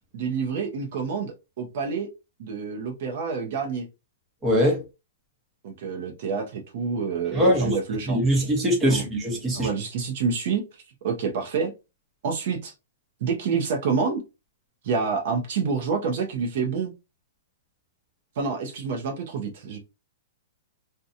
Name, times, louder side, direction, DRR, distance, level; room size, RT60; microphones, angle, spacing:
voice 1, 0.1-2.1 2.4-3.9 5.6-8.4 8.9-9.0 9.5-10.6 11.0-11.7 12.2-12.7 13.2-14.2 14.8-16.9 18.4-19.8, right 5 dB, 50° right, 0.6 m, -28 dB
voice 2, 4.4-4.8 7.3-7.8 8.1-9.7, equal, 15° right, 0.8 m, -22 dB
2.7 x 2.2 x 2.5 m
hypercardioid pair, 160°, 0 cm